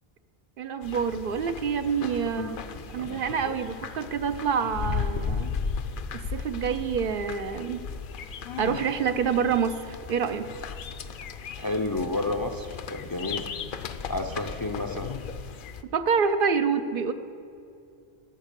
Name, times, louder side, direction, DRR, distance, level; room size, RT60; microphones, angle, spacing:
voice 1, 0.6-2.6 2.9-5.5 6.1-7.8 8.6-10.5 15.9-17.1, right 6 dB, 65° right, 9 dB, 0.7 m, -27 dB
sound 1, 0.8-15.8, left 6 dB, 60° left, 0.7 m, -36 dB
voice 2, 2.4-3.2 11.6-13.5 14.1-15.1, left 2 dB, 30° left, 4 dB, 0.4 m, -31 dB
12.5 x 7.1 x 6.7 m, 2.5 s
omnidirectional pair, 1.0 m